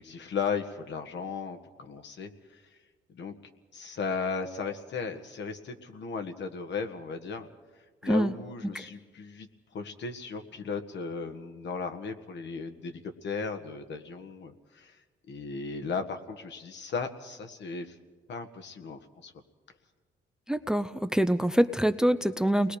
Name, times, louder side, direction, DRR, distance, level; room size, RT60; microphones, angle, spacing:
voice 1, 0.0-2.8 3.1-3.4 3.7-7.5 8.0-15.0 15.3-18.0 18.3-19.3, left 5 dB, 65° left, 6 dB, 1.7 m, -36 dB
voice 2, 8.0-8.3 20.5-22.8, right 1 dB, 5° right, 12 dB, 0.6 m, -25 dB
29.0 x 20.5 x 5.0 m, 1.4 s
cardioid pair, 90°, 20 cm